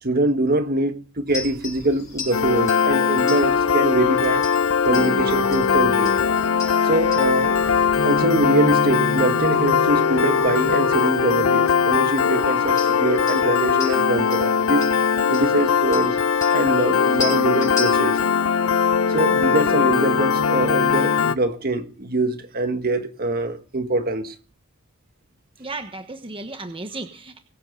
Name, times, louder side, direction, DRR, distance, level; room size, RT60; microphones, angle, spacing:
voice 1, 0.0-4.5 4.8-6.1 6.8-7.6 8.0-14.9 15.3-16.2 16.5-18.2 19.1-24.3, right 2 dB, 45° right, 1.4 m, -23 dB
sound 1, 1.3-18.2, left 3 dB, 15° left, 6.4 m, -38 dB
Piano, 2.3-21.4, left 6 dB, 90° left, 0.7 m, -20 dB
voice 2, 25.6-27.4, right 2 dB, 25° right, 1.2 m, -34 dB
22.0 x 8.7 x 3.8 m
head